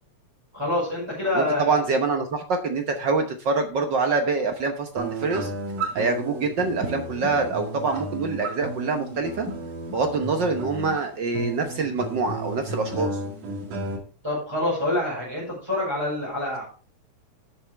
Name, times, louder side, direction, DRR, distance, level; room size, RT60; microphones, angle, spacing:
voice 1, 0.5-1.8 14.2-16.6, left 1 dB, 10° right, -7 dB, 5.3 m, -26 dB
voice 2, 1.3-5.5 5.9-9.5 9.9-13.1, right 4 dB, 65° right, 5 dB, 1.1 m, -25 dB
sound 1, 5.0-14.0, right 2 dB, 85° right, 3.8 m, -33 dB
12.0 x 8.7 x 3.4 m, 0.38 s
omnidirectional pair, 3.4 m